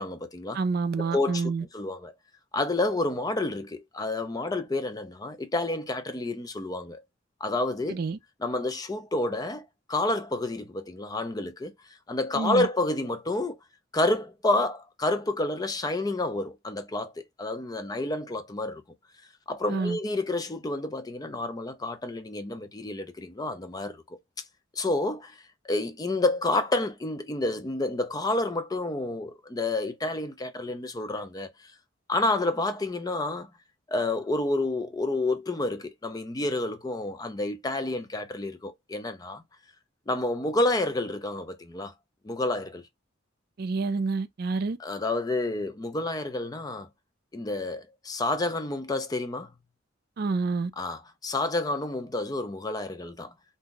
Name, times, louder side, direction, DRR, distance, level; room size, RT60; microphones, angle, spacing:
voice 1, 0.0-0.6 1.0-2.1 2.5-7.0 7.4-8.0 8.4-11.7 12.1-13.6 13.9-18.8 19.5-24.2 24.7-25.4 25.6-31.5 32.1-33.5 33.9-39.4 40.1-41.9 42.2-42.8 44.8-46.9 47.3-49.5 50.8-53.3, left 2 dB, 20° left, 0.4 m, -29 dB
voice 2, 0.5-1.6 7.9-8.2 12.3-12.7 19.7-20.0 43.6-44.8 50.2-50.7, right 4 dB, 50° right, 0.4 m, -28 dB
2.6 x 2.2 x 3.7 m
head